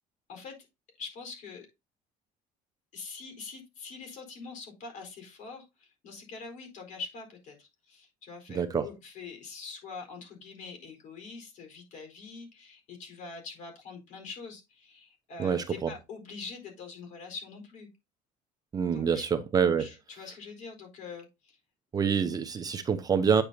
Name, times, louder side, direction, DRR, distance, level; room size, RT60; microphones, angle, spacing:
voice 1, 1.0-1.7 2.9-17.9 18.9-19.3 19.6-21.6, left 4 dB, 55° left, 4.4 m, -44 dB
voice 2, 8.5-8.9 15.4-15.9 18.7-19.9 21.9-23.4, right 6 dB, 25° right, 0.7 m, -26 dB
9.1 x 6.7 x 2.8 m
cardioid pair, 155°, 15 cm